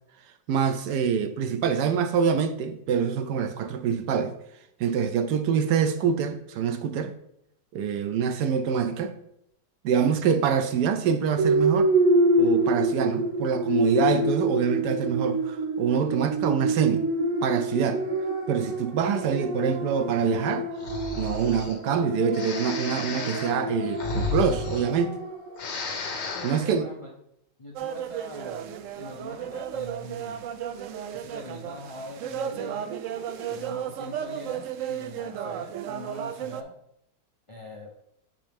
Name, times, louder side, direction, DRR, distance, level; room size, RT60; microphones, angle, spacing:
voice 1, 0.5-4.3 4.8-7.1 7.7-9.1 9.8-11.9 12.4-17.1 17.4-18.0 18.5-20.7 21.2-25.1 26.4-26.9, right 7 dB, 75° right, 1.1 m, -25 dB
sound 1, 11.4-25.6, right 1 dB, 55° right, 1.3 m, -27 dB
Breathing, 20.8-21.8 22.3-25.3 25.5-26.7, left 4 dB, 75° left, 1.8 m, -33 dB
voice 2, 26.3-27.2 27.6-30.4 31.1-32.9 33.5-36.7 37.5-37.9, left 1 dB, 55° left, 0.3 m, -42 dB
sound 2, 27.8-36.6, right 9 dB, 90° right, 0.6 m, -34 dB
7.3 x 5.3 x 3.5 m
omnidirectional pair, 1.9 m